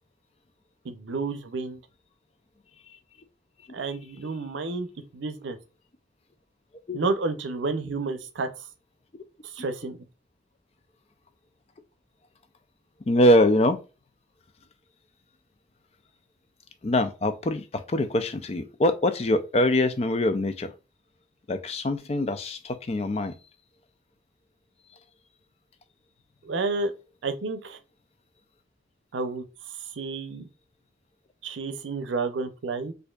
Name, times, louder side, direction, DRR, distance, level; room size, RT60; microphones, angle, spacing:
voice 1, 0.8-1.8 3.7-4.9 5.1-5.6 6.9-8.5 9.4-10.0 26.4-26.9 27.2-27.8 29.1-29.4 30.0-30.5 31.4-32.9, right 3 dB, 85° right, 0.6 m, -30 dB
voice 2, 13.1-13.8 16.8-20.7 21.5-23.3, left 1 dB, 35° left, 0.4 m, -23 dB
4.4 x 2.6 x 2.3 m
head